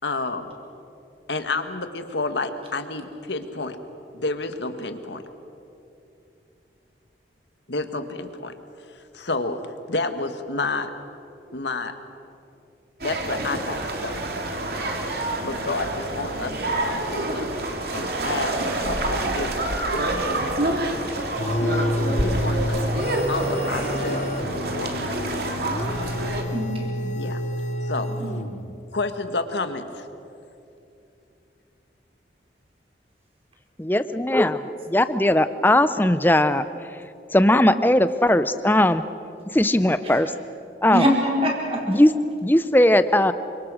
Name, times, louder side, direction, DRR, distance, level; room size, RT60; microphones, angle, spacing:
voice 1, 0.0-0.5 1.3-3.8 4.1-5.2 7.7-8.5 9.0-9.6 9.9-10.9 11.5-11.9 13.0-14.1 15.4-17.5 17.9-20.7 22.2-23.0 23.3-25.1 27.1-27.4 27.8-28.1 28.9-30.0, left 3 dB, 75° left, 8 dB, 1.7 m, -30 dB
sound 1, 13.0-26.4, right 1 dB, 55° right, 2.7 m, -27 dB
sound 2, 21.4-28.8, left 1 dB, 40° left, 1.0 m, -29 dB
voice 2, 22.1-22.6 25.6-26.1 26.5-26.9 28.1-28.4 40.9-41.2 41.4-41.8, equal, 30° right, -1 dB, 4.8 m, -25 dB
voice 3, 33.8-36.6 37.3-39.0 39.5-40.3 40.8-41.0 41.9-43.3, left 1 dB, 10° left, 12 dB, 0.7 m, -19 dB
28.0 x 25.0 x 6.4 m, 2.8 s
head